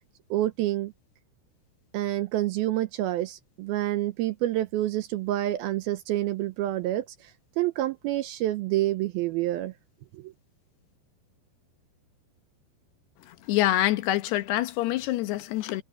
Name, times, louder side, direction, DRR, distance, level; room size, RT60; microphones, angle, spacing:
voice 1, 0.3-0.9 1.9-7.3 7.6-9.7 10.1-10.3, right 14 dB, 80° right, 2.3 m, -28 dB
voice 2, 13.3-15.8, left 14 dB, 75° left, 3.0 m, -26 dB
omnidirectional pair, 4.9 m